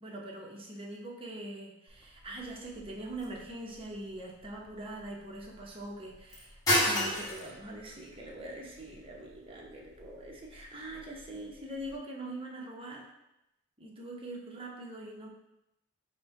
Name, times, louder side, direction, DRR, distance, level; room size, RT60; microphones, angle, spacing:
voice 1, 0.0-13.1 13.8-15.3, right 1 dB, 25° right, -2 dB, 0.8 m, -43 dB
sound 1, 1.9-12.0, equal, 15° left, 1.4 m, -36 dB
5.2 x 2.2 x 4.6 m, 0.88 s
head